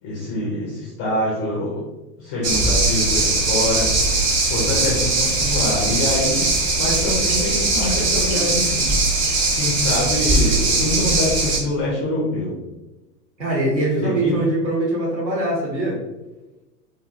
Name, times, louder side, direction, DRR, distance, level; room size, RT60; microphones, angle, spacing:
voice 1, 0.0-1.8 2.2-4.2 4.5-6.5 6.8-12.5 14.0-14.4, left 1 dB, 20° left, -5 dB, 0.3 m, -25 dB
sound 1, 2.4-11.6, right 2 dB, 25° right, 0.6 m, -20 dB
voice 2, 13.4-16.0, right 1 dB, 90° right, -4 dB, 1.2 m, -22 dB
2.6 x 2.5 x 2.5 m, 1.1 s
figure-of-eight pair, 100°, 50 cm